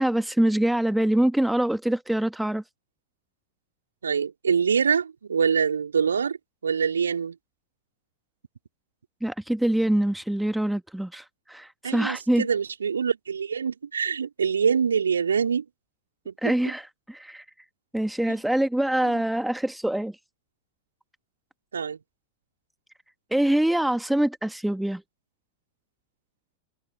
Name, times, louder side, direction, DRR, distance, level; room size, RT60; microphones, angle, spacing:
voice 1, 0.0-2.6 9.2-12.5 16.4-17.4 17.9-20.2 23.3-25.0, right 1 dB, 5° right, 2.0 m, -24 dB
voice 2, 4.0-6.4 6.6-7.4 11.8-15.6 16.3-16.5 18.3-18.4 19.0-19.2 21.7-22.0, right 6 dB, 70° right, 4.0 m, -25 dB
figure-of-eight pair, 90°, 0 cm